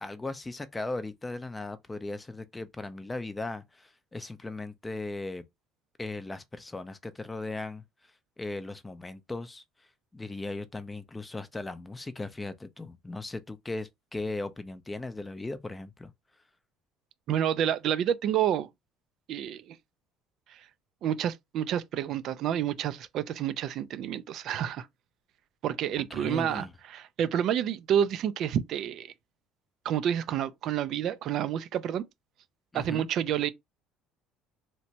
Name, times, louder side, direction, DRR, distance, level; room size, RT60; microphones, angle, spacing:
voice 1, 0.0-5.4 6.0-7.8 8.4-9.6 10.1-16.1 26.1-26.7 32.7-33.1, left 2 dB, 15° left, 0.4 m, -37 dB
voice 2, 17.3-18.7 19.3-19.8 20.5-20.7 21.0-24.9 25.6-29.1 29.8-32.0 32.7-33.5, right 10 dB, 60° right, 0.3 m, -29 dB
2.9 x 2.1 x 2.7 m
supercardioid pair, 95°, 0 cm